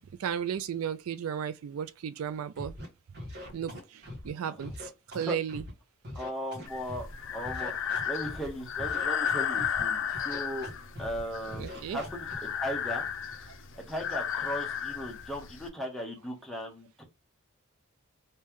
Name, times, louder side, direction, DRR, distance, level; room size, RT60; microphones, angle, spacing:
voice 1, 0.0-2.8 3.5-5.7 11.5-12.0, right 8 dB, 75° right, 0.3 m, -35 dB
Scratching (performance technique), 2.6-2.9 3.1-4.3 4.6-5.7 6.0-7.1 7.4-8.5 8.8-9.8 10.1-10.7 11.0-11.2 11.5-12.3, left 1 dB, 50° right, 1.5 m, -42 dB
voice 2, 6.1-10.7 11.0-12.3 12.6-13.5 13.9-17.0, equal, ahead, 1.0 m, -37 dB
Breathing, 6.7-15.7, left 8 dB, 65° left, 0.5 m, -34 dB
3.2 x 2.8 x 3.5 m
head